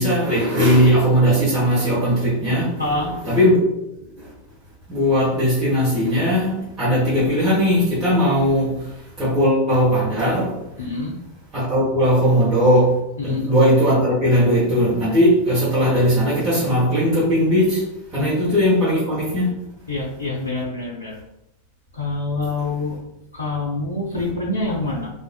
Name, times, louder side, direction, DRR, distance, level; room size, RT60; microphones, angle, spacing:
voice 1, 0.0-2.7 3.2-3.6 3.9-4.3 4.9-8.9 9.2-10.6 11.5-12.9 13.2-17.8 18.1-19.5, equal, 20° right, -10 dB, 1.2 m, -18 dB
voice 2, 2.8-3.2 10.8-11.1 13.2-13.5 18.2-18.7 19.9-21.1 21.9-23.0 23.3-25.1, left 2 dB, 75° left, -3 dB, 0.5 m, -26 dB
3.5 x 2.5 x 2.2 m, 0.85 s
figure-of-eight pair, 90°, 0 cm